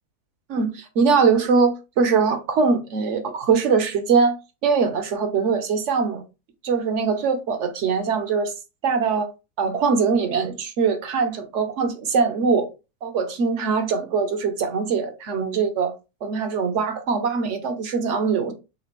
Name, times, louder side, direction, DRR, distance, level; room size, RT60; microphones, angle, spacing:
voice 1, 0.5-4.4 4.6-6.2 6.6-8.5 8.8-9.3 9.6-12.7 13.0-15.9 16.2-18.5, right 5 dB, 55° right, 0.9 m, -22 dB
4.1 x 3.6 x 3.0 m
omnidirectional pair, 1.7 m